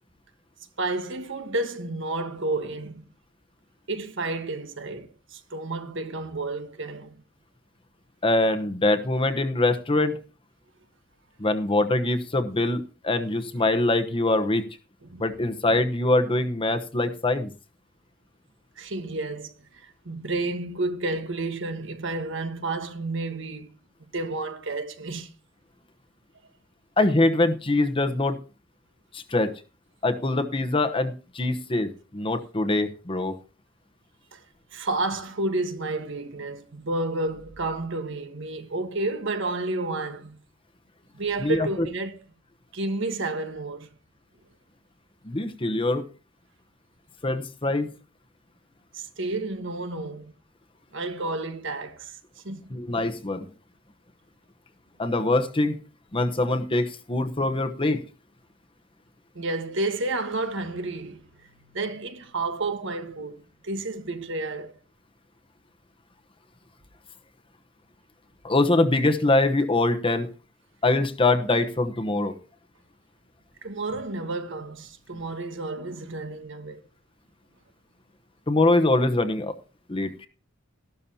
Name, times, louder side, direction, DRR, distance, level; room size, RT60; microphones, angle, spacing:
voice 1, 0.8-3.1 3.9-7.2 15.0-15.2 18.8-23.7 24.1-25.3 34.3-34.4 34.7-40.4 41.1-42.2 42.7-43.9 48.9-50.3 50.9-52.2 52.4-52.8 59.3-64.8 73.6-76.8, right 2 dB, 65° right, 1.4 m, -31 dB
voice 2, 8.2-10.1 11.4-14.6 15.2-17.5 27.0-28.4 29.1-29.5 30.0-33.4 41.4-41.7 45.2-46.0 47.2-47.9 52.7-53.4 55.0-55.7 56.1-58.0 68.4-70.3 70.8-72.3 78.5-79.5 79.9-80.1, left 2 dB, 25° left, 1.0 m, -23 dB
13.5 x 12.5 x 2.8 m
head